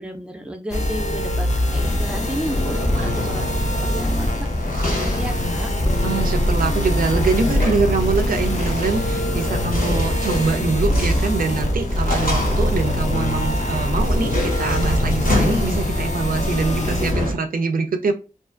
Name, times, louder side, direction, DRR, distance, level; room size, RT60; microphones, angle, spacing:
voice 1, 0.0-4.3 4.6-5.7, equal, 5° right, 0.4 m, -33 dB
sound 1, 0.7-17.1, left 1 dB, 55° left, 0.5 m, -24 dB
sound 2, 1.7-17.3, left 1 dB, 85° left, 0.9 m, -25 dB
voice 2, 6.0-18.1, right 4 dB, 85° right, 0.4 m, -24 dB
2.4 x 2.4 x 2.4 m
wide cardioid pair, 75°, 14 cm